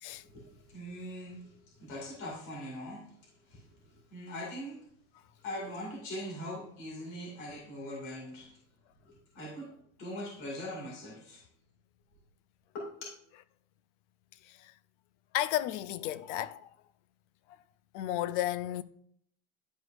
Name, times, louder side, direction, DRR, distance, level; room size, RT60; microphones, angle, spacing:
voice 1, 0.2-3.2 3.5-4.9 5.4-8.6 9.0-9.7 10.0-11.4 12.7-13.1, left 1 dB, 40° left, 2.4 m, -42 dB
voice 2, 15.3-16.7 17.9-18.8, left 13 dB, 60° left, 0.5 m, -33 dB
11.0 x 4.8 x 2.5 m
cardioid pair, 170°, 41 cm